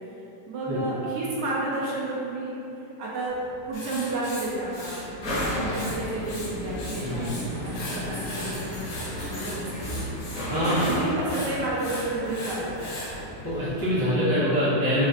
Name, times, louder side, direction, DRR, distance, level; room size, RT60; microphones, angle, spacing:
voice 1, 0.5-2.5 3.0-3.4 3.7-7.3 7.6-10.0 10.6-13.2, right 2 dB, 75° right, -6 dB, 1.2 m, -31 dB
sound 1, 3.3-13.9, equal, 60° left, 1.4 m, -34 dB
Writing, 3.7-6.0 6.2-7.4 7.7-13.1, left 1 dB, 80° left, 1.4 m, -38 dB
voice 2, 7.0-7.3 10.5-10.9 13.4-15.1, equal, 20° left, -14 dB, 0.6 m, -24 dB
4.0 x 2.7 x 2.5 m, 2.9 s
omnidirectional pair, 1.9 m